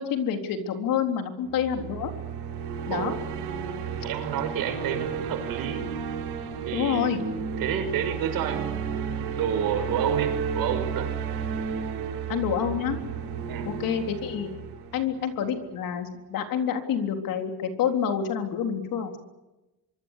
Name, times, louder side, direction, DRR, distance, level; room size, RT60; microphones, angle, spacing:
voice 1, 0.0-2.1 2.9-3.1 6.7-7.2 12.3-13.0 13.7-14.5 14.9-19.1, left 8 dB, 55° left, 6 dB, 3.7 m, -28 dB
sound 1, 1.5-15.7, right 6 dB, 80° right, 7.4 m, -33 dB
voice 2, 2.9-3.2 4.0-5.9 6.7-11.1 13.5-13.7, right 8 dB, 60° right, 7 dB, 5.7 m, -30 dB
25.0 x 24.5 x 8.3 m, 1.0 s
cardioid pair, 165°, 40 cm